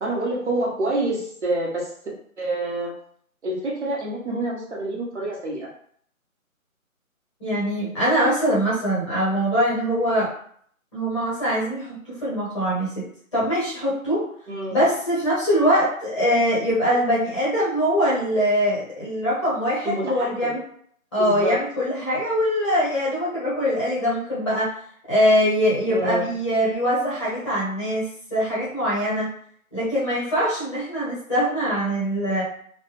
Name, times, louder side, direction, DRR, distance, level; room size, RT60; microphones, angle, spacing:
voice 1, 0.0-1.9 2.4-2.9 3.4-5.7 14.5-14.8 19.8-20.5 21.2-21.6 25.9-26.3, right 2 dB, 55° right, -3 dB, 1.2 m, -27 dB
voice 2, 7.4-10.3 10.9-12.9 13.3-14.2 14.7-20.6 21.1-24.7 25.1-29.3 29.7-32.4, equal, 20° left, -8 dB, 0.8 m, -22 dB
3.2 x 2.2 x 3.0 m, 0.62 s
figure-of-eight pair, 155°, 42 cm